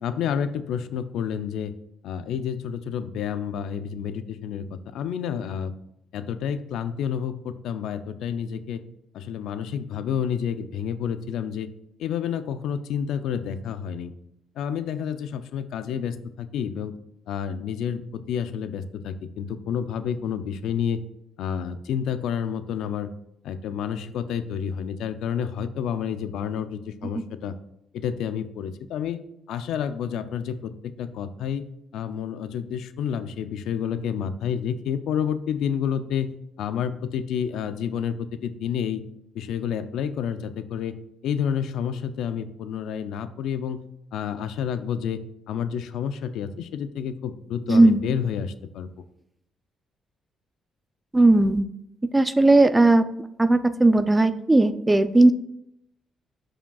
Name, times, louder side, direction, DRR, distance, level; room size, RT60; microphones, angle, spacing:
voice 1, 0.0-1.7 2.0-5.7 6.1-8.8 9.1-11.7 12.0-14.1 14.6-16.9 17.3-21.0 21.4-23.1 23.4-27.5 27.9-29.2 29.5-31.7 31.9-36.3 36.6-39.0 39.3-40.9 41.2-43.8 44.1-45.2 45.5-48.9, left 8 dB, 80° left, 12 dB, 0.4 m, -29 dB
voice 2, 47.7-48.0 51.1-51.7 52.1-53.0 53.4-55.3, right 2 dB, 15° right, 12 dB, 0.4 m, -17 dB
11.0 x 5.0 x 2.3 m, 0.79 s
cardioid pair, 90°, 0 cm